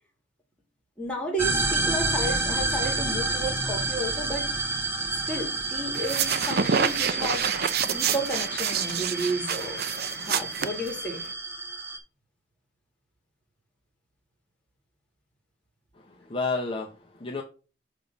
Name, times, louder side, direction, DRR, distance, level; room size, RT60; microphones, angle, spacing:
voice 1, 1.0-4.4 5.3-7.5 7.8-9.8 10.2-11.2, right 1 dB, 5° left, 2.4 m, -32 dB
sound 1, 1.4-12.0, right 3 dB, 15° right, 1.1 m, -30 dB
sound 2, 5.9-11.3, right 7 dB, 55° right, 0.5 m, -28 dB
voice 2, 15.9-17.4, left 3 dB, 30° left, 0.8 m, -31 dB
7.1 x 3.6 x 5.3 m
head